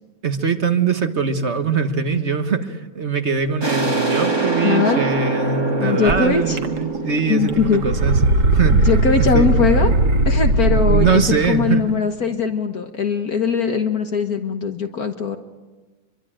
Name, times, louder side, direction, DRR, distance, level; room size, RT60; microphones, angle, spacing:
voice 1, 0.2-8.9 9.2-9.5 10.7-11.8, right 5 dB, 40° right, 9 dB, 1.4 m, -22 dB
sound 1, 3.6-9.1, right 3 dB, 15° right, 2.0 m, -24 dB
voice 2, 4.6-5.0 5.8-6.6 7.3-7.8 8.7-9.9 10.2-15.4, left 5 dB, 55° left, 6 dB, 1.6 m, -20 dB
sound 2, 6.1-6.2 6.6-7.1 7.4-11.4, right 2 dB, 65° right, 2.2 m, -18 dB
26.0 x 22.5 x 8.9 m, 1.3 s
omnidirectional pair, 2.0 m